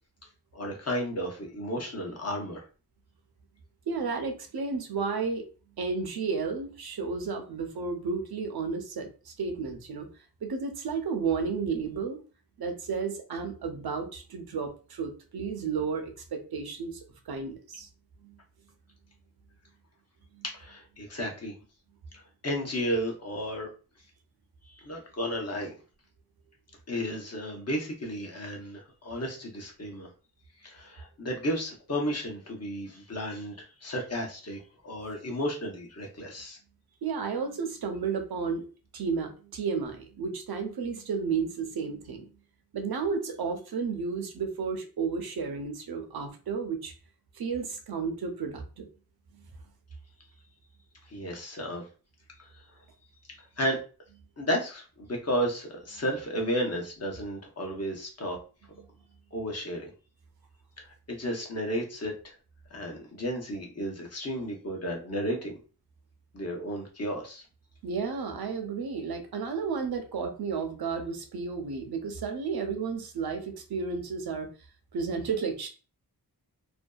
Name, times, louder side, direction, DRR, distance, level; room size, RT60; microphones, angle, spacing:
voice 1, 0.5-2.6 20.4-21.5 22.4-23.7 24.8-25.7 26.9-30.1 30.6-36.6 51.1-51.8 53.6-53.8 54.4-58.4 59.3-59.9 60.8-62.3 62.7-65.6 66.3-67.4, equal, 40° left, 0 dB, 0.7 m, -33 dB
voice 2, 3.9-5.5 5.8-10.1 10.4-12.2 12.6-17.9 18.2-18.4 20.3-20.4 37.0-38.7 38.9-42.3 42.7-46.9 47.3-48.9 67.8-74.5 74.9-75.7, right 5 dB, 70° right, 5 dB, 0.6 m, -32 dB
2.5 x 2.2 x 2.2 m, 0.36 s
wide cardioid pair, 95°, 38 cm